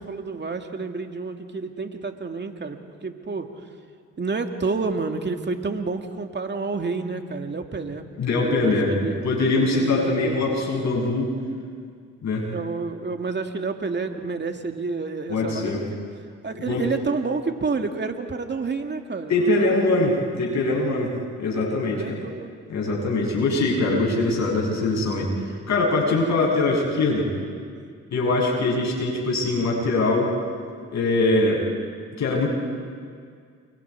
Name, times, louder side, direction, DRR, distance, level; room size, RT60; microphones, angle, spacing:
voice 1, 0.0-3.5 4.2-8.0 8.3-10.6 12.5-15.7 16.4-20.1 21.8-22.5 27.7-27.9, right 4 dB, 35° right, 5 dB, 2.4 m, -30 dB
voice 2, 8.2-8.9 9.2-11.3 12.2-12.4 15.3-15.8 16.7-16.9 19.3-22.2 22.7-27.3 28.1-30.3 30.9-31.6 32.2-32.5, left 2 dB, 60° left, -3 dB, 7.4 m, -22 dB
29.5 x 23.0 x 4.9 m, 2.2 s
supercardioid pair, 55°, 31 cm